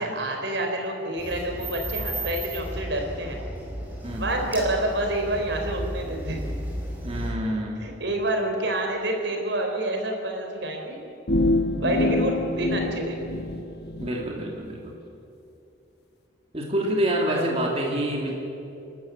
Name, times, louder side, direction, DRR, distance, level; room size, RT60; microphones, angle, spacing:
voice 1, 0.0-3.4 4.1-6.4 7.8-11.0 11.8-13.2 17.3-17.8, right 1 dB, 80° right, 2 dB, 4.2 m, -28 dB
sound 1, 1.2-7.3, right 1 dB, 10° right, 4.5 m, -34 dB
voice 2, 7.0-7.8 11.8-12.3 14.0-15.0 16.5-18.3, right 1 dB, 35° right, -1 dB, 2.6 m, -27 dB
sound 2, 11.3-14.1, left 2 dB, 60° left, 1.2 m, -26 dB
29.5 x 12.5 x 8.7 m, 2.7 s
head